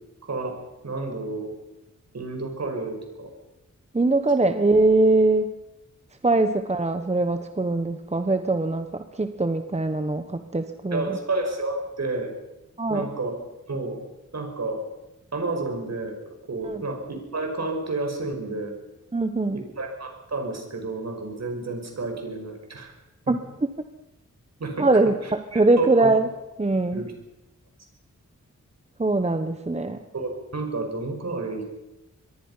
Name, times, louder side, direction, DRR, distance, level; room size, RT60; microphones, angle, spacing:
voice 1, 0.2-1.5 2.1-3.3 6.3-6.4 10.9-12.3 12.9-13.4 13.7-14.0 14.3-14.8 15.3-16.2 16.5-18.7 19.5-22.9 24.6-26.1 26.9-27.1 30.1-31.6, right 3 dB, 55° right, 4 dB, 5.7 m, -31 dB
voice 2, 3.9-5.5 6.2-11.2 12.8-13.1 16.6-16.8 19.1-19.6 23.3-23.4 24.8-26.3 26.6-27.0 29.0-30.0, right 2 dB, 20° right, 8 dB, 1.1 m, -22 dB
25.0 x 21.5 x 5.7 m, 0.93 s
wide cardioid pair, 95°, 31 cm